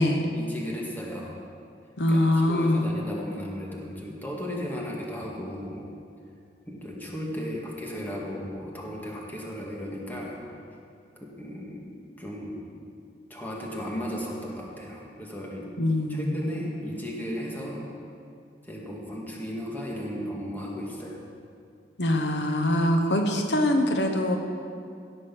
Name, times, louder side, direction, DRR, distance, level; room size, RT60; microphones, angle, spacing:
voice 1, 0.3-1.4 2.1-5.8 6.7-10.4 11.2-11.9 12.2-12.7 13.3-15.7 16.1-17.9 18.7-21.2, equal, 10° left, -3 dB, 2.0 m, -35 dB
voice 2, 2.0-2.9 15.8-16.5 22.0-24.4, left 1 dB, 75° left, 4 dB, 1.0 m, -23 dB
16.5 x 6.3 x 6.1 m, 2.4 s
head